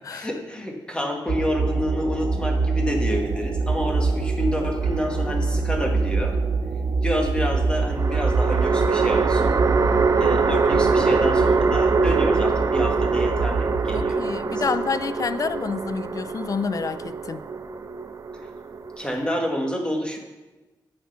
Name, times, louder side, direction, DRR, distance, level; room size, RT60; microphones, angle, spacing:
voice 1, 0.1-6.4 7.0-9.6 10.2-14.8 19.0-20.2, equal, 10° left, 2 dB, 1.8 m, -28 dB
sound 1, 1.3-14.0, right 4 dB, 80° right, 1.5 m, -25 dB
sound 2, 4.8-5.7 7.9-19.3, right 4 dB, 40° right, 0.6 m, -24 dB
voice 2, 13.9-17.4, left 5 dB, 45° left, 14 dB, 0.5 m, -28 dB
10.0 x 7.6 x 5.8 m, 1.2 s
wide cardioid pair, 100°, 8 cm